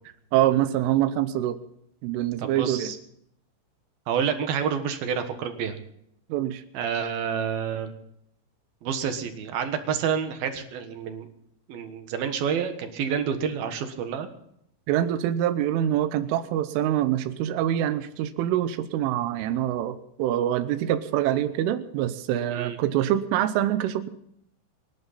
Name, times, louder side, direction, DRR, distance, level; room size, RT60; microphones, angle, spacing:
voice 1, 0.3-1.6 2.0-2.9 6.3-6.6 14.9-24.1, right 12 dB, 90° right, 11 dB, 3.5 m, -25 dB
voice 2, 2.4-3.0 4.1-5.8 6.7-7.9 8.8-11.3 11.7-14.3 22.5-22.8, right 7 dB, 65° right, 7 dB, 2.8 m, -28 dB
28.0 x 12.0 x 4.2 m, 0.73 s
omnidirectional pair, 5.5 m